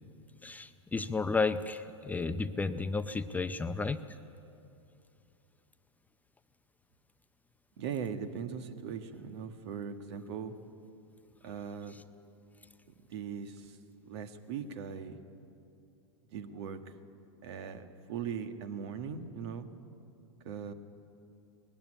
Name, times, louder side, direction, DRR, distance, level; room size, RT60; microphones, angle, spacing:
voice 1, 0.4-4.0, left 4 dB, 10° left, 10 dB, 0.5 m, -32 dB
voice 2, 7.8-10.5 11.4-11.9 13.1-13.8 14.0-15.2 16.3-16.8 17.4-19.7 20.4-20.7, right 7 dB, 65° right, 8 dB, 1.6 m, -39 dB
19.5 x 15.0 x 9.9 m, 2.6 s
hypercardioid pair, 120°, 15 cm